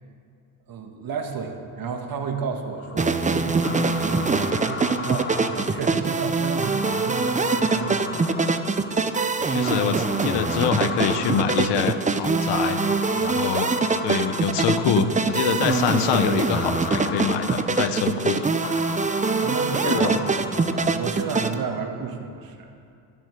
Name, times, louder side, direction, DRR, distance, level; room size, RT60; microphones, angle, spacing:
voice 1, 0.7-8.6 19.4-22.7, right 5 dB, 50° right, 3 dB, 1.8 m, -32 dB
sound 1, 2.7-21.6, left 4 dB, 25° left, 1.0 m, -36 dB
sound 2, 3.0-21.5, right 4 dB, 15° right, 0.7 m, -24 dB
voice 2, 9.5-12.8 13.2-13.7 14.0-18.5 19.9-20.2, left 8 dB, 65° left, 11 dB, 1.0 m, -25 dB
12.0 x 7.5 x 6.8 m, 2.5 s
hypercardioid pair, 65°, 46 cm